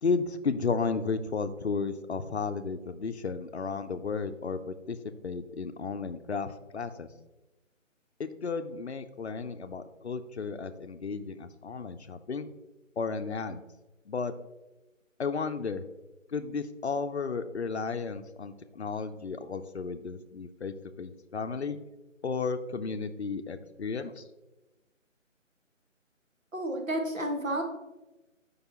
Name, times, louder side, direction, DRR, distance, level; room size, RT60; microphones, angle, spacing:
voice 1, 0.0-5.0 5.2-7.1 8.2-12.5 13.0-13.6 14.1-14.3 15.2-15.8 16.3-21.8 22.2-24.2, left 4 dB, 55° left, 10 dB, 0.6 m, -33 dB
voice 2, 26.5-27.6, right 1 dB, 80° right, 2 dB, 1.7 m, -31 dB
7.8 x 5.3 x 3.0 m, 1.1 s
figure-of-eight pair, 160°, 39 cm